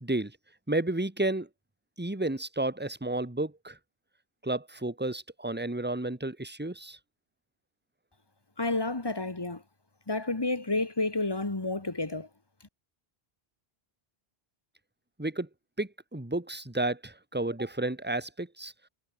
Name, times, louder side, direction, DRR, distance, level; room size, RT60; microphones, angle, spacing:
voice 1, 0.0-0.3 0.7-1.5 2.0-3.8 4.4-7.0 15.2-15.5 15.8-18.7, right 2 dB, 10° right, 1.8 m, -31 dB
voice 2, 8.6-9.6 10.1-12.3, left 2 dB, 25° left, 1.6 m, -30 dB
omnidirectional pair, 1.1 m